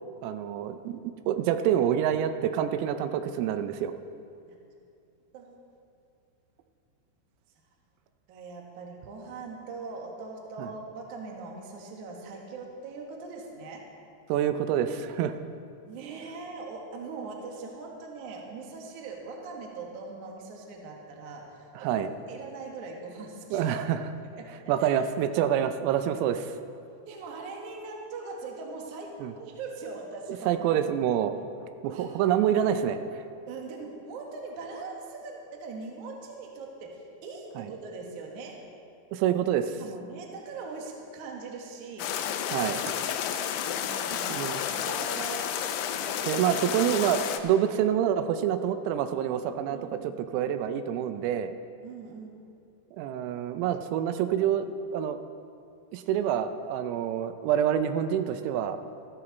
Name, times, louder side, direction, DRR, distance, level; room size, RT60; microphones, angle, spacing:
voice 1, 0.2-3.9 10.6-10.7 14.3-15.4 21.8-22.1 23.5-24.1 24.7-26.5 29.2-29.3 30.5-31.3 31.8-33.2 37.6-37.7 39.1-39.8 42.5-42.8 44.3-44.6 46.2-51.5 53.0-55.2 55.9-58.8, right 9 dB, 85° right, 9 dB, 3.3 m, -27 dB
voice 2, 5.3-5.7 8.3-13.9 15.9-22.0 22.3-23.6 24.4-24.5 24.8-24.9 27.1-30.5 31.9-32.3 33.5-38.6 39.8-42.1 43.6-45.5 49.7-50.1 51.8-52.4, right 4 dB, 70° right, 0 dB, 1.9 m, -41 dB
sound 1, 42.0-47.4, left 9 dB, 85° left, 2.7 m, -31 dB
14.0 x 13.5 x 4.1 m, 2.6 s
omnidirectional pair, 5.9 m